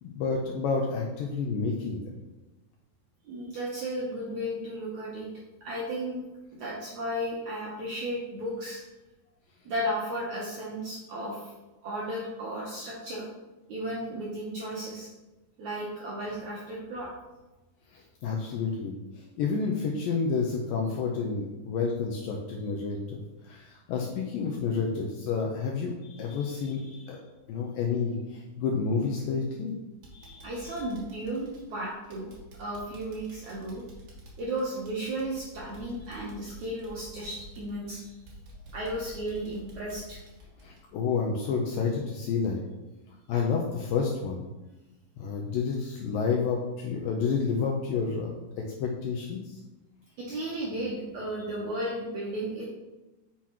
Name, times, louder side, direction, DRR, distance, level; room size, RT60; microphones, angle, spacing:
voice 1, 0.0-2.0 17.9-27.2 27.5-29.8 30.1-30.8 40.6-42.6 43.3-44.5 45.2-49.6 51.4-51.5, left 5 dB, 85° left, 0 dB, 2.0 m, -30 dB
voice 2, 3.3-5.3 5.6-6.2 6.6-8.8 9.7-11.5 11.8-13.3 13.7-15.1 15.6-17.1 30.4-32.3 32.6-33.8 34.4-38.2 38.7-40.2 50.2-52.6, right 1 dB, 75° right, -4 dB, 1.7 m, -34 dB
sound 1, 29.4-29.7 30.0-41.6 41.9-42.1 42.5-42.6, equal, 50° right, 2.3 m, -50 dB
8.4 x 5.8 x 2.9 m, 1.1 s
omnidirectional pair, 4.7 m